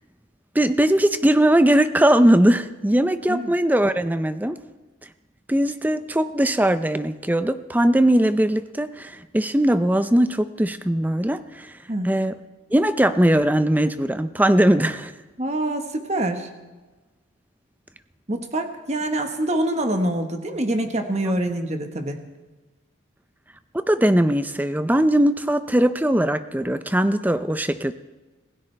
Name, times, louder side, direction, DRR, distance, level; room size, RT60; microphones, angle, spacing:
voice 1, 0.5-4.6 5.5-11.7 12.0-12.4 12.7-15.1 21.3-21.4 23.7-27.9, right 1 dB, 10° right, 11 dB, 0.5 m, -20 dB
voice 2, 15.4-16.5 18.3-22.2, right 1 dB, 35° right, 5 dB, 1.3 m, -25 dB
26.0 x 16.5 x 3.4 m, 1.2 s
head